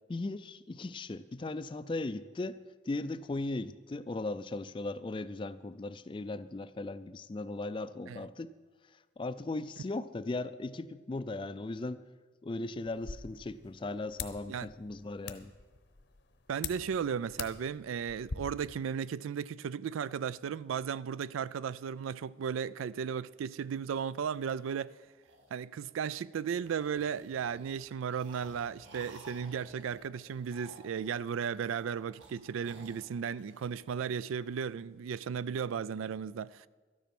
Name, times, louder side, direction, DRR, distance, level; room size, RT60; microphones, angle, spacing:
voice 1, 0.1-8.5 9.2-12.0 12.4-15.5, left 2 dB, 25° left, 0.3 m, -38 dB
sound 1, 12.9-18.4, left 6 dB, 60° left, 0.8 m, -45 dB
voice 2, 16.5-24.9 25.5-36.7, right 7 dB, 85° right, 0.3 m, -35 dB
sound 2, 24.3-26.2 26.6-34.4, right 2 dB, 65° right, 2.0 m, -56 dB
13.0 x 10.0 x 6.0 m
head